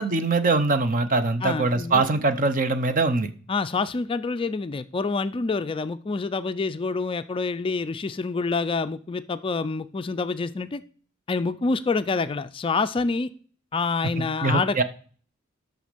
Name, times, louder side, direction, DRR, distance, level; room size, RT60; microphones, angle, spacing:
voice 1, 0.0-3.3 14.2-14.8, right 3 dB, 40° right, 10 dB, 0.7 m, -23 dB
voice 2, 1.4-2.2 3.5-10.8 11.3-13.3 13.7-14.8, left 4 dB, 25° left, 11 dB, 0.3 m, -27 dB
8.2 x 6.2 x 5.1 m, 0.43 s
head